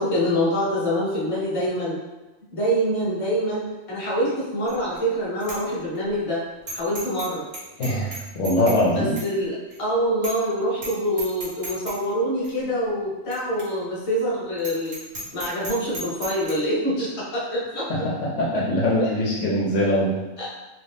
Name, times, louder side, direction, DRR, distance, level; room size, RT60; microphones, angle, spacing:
voice 1, 0.0-2.0 2.5-6.4 6.7-7.4 8.9-15.0 15.3-17.8 19.0-19.1 20.4-20.5, equal, 30° left, -7 dB, 1.0 m, -25 dB
Bicycle bell, 4.7-5.0 5.4-5.6 6.0-6.1 6.7-7.3 7.5-8.8 9.2-9.3 9.7-9.8 10.2-10.5 10.8-10.9 11.2-12.0 12.4-12.5 13.3-13.4 13.6-13.7 14.1-14.2 14.6-16.5, right 2 dB, 55° right, 1.2 m, -34 dB
voice 2, 7.8-9.1 17.9-20.2, left 1 dB, 75° left, -5 dB, 1.0 m, -22 dB
3.0 x 2.6 x 3.4 m, 1.1 s
omnidirectional pair, 1.3 m